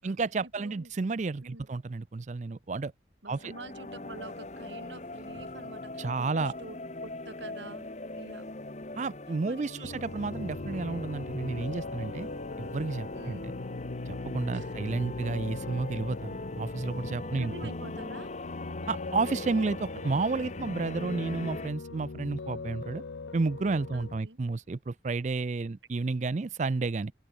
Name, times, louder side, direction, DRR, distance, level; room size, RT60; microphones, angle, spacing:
voice 1, 0.0-2.9 3.3-3.5 6.0-6.5 9.0-12.3 12.6-13.4 14.1-17.7 18.9-23.0 23.3-27.1, right 3 dB, 40° right, 0.4 m, -31 dB
voice 2, 0.6-0.9 1.4-1.7 3.2-7.9 8.2-8.5 9.4-10.0 13.1-13.5 14.5-14.8 17.4-18.3 23.9-24.4, right 2 dB, 80° right, 5.6 m, -47 dB
sound 1, 3.3-21.7, left 2 dB, 40° left, 1.3 m, -40 dB
Piano, 9.8-24.2, left 3 dB, 85° left, 0.7 m, -41 dB
open air
head